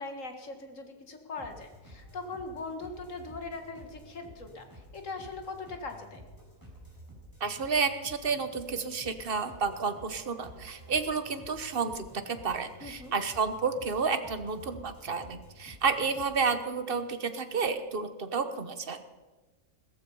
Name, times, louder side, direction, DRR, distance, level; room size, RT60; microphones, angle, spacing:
voice 1, 0.0-6.2 12.8-13.1, left 3 dB, 65° left, 5 dB, 2.1 m, -40 dB
sound 1, 1.4-16.6, equal, 15° right, 4.4 m, -51 dB
voice 2, 7.4-19.0, right 5 dB, 45° right, 10 dB, 1.3 m, -31 dB
16.5 x 14.0 x 5.5 m, 1.3 s
omnidirectional pair, 1.4 m